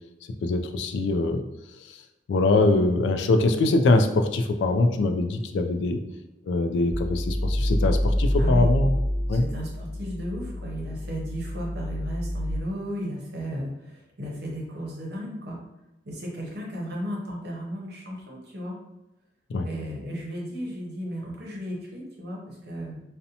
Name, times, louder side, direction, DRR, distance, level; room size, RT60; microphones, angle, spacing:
voice 1, 0.4-1.4 1.8-2.0 2.3-6.0 6.5-9.0 9.3-9.4 19.5-19.7, left 2 dB, 75° left, 7 dB, 0.3 m, -23 dB
sound 1, 6.9-12.5, left 1 dB, 30° right, 0.5 m, -27 dB
voice 2, 8.4-8.7 9.3-15.6 16.0-18.8 19.6-23.0, equal, 60° right, -2 dB, 0.7 m, -34 dB
2.6 x 2.1 x 2.7 m, 0.96 s
head